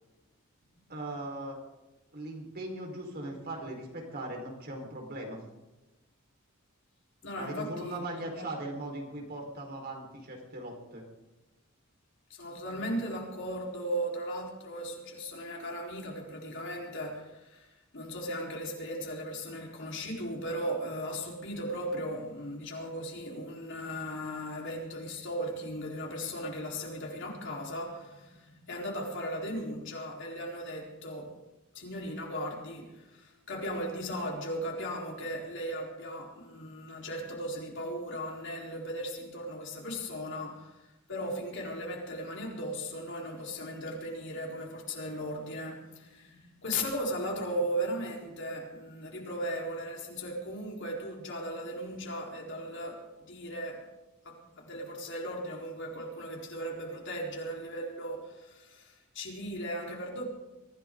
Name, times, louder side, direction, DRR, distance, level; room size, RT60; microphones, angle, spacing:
voice 1, 0.9-1.6 2.1-5.4 7.3-11.0, right 1 dB, 50° right, 4.6 m, -39 dB
voice 2, 7.2-8.0 12.3-31.4 31.7-53.9 54.2-60.2, equal, 60° left, 4.2 m, -37 dB
23.5 x 16.0 x 3.9 m
head